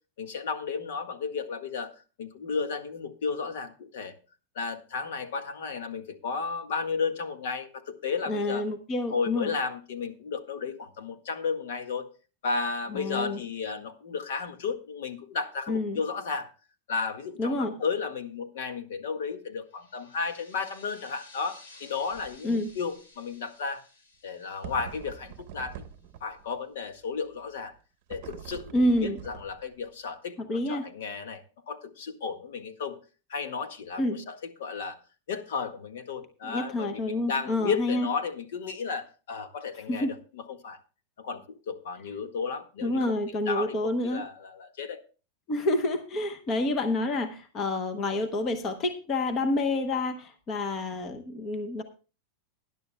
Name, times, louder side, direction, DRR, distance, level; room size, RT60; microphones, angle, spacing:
voice 1, 0.2-1.9 2.2-4.1 4.5-8.6 9.1-12.1 12.4-16.5 16.9-23.8 24.2-25.8 26.2-27.7 28.1-30.4 30.7-33.0 33.3-35.0 35.3-40.8 41.2-45.0, left 5 dB, 65° left, 8 dB, 1.7 m, -33 dB
voice 2, 8.3-9.5 12.9-13.4 15.7-16.0 17.4-17.7 22.4-22.7 28.7-29.2 30.4-30.8 34.0-34.2 36.4-38.1 39.9-40.1 42.8-44.2 45.5-51.8, left 1 dB, 20° left, 8 dB, 0.9 m, -28 dB
sound 1, 19.7-26.0, left 3 dB, 80° left, 5.8 m, -55 dB
sound 2, 22.1-22.4 22.7-22.8 24.6-26.5 28.1-29.9, right 8 dB, 40° right, 0.9 m, -44 dB
20.0 x 11.0 x 2.2 m, 0.33 s
supercardioid pair, 180°, 0 cm